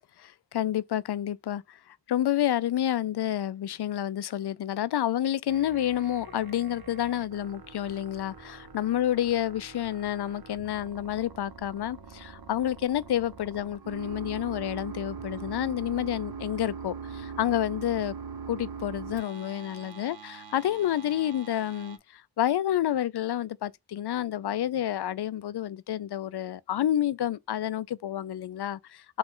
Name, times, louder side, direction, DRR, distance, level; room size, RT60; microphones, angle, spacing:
voice 1, 0.2-18.1 18.5-29.0, left 11 dB, 65° left, 0.5 m, -29 dB
sound 1, 5.5-22.0, right 5 dB, 55° right, 1.1 m, -42 dB
5.1 x 2.4 x 3.7 m
cardioid pair, 40°, 42 cm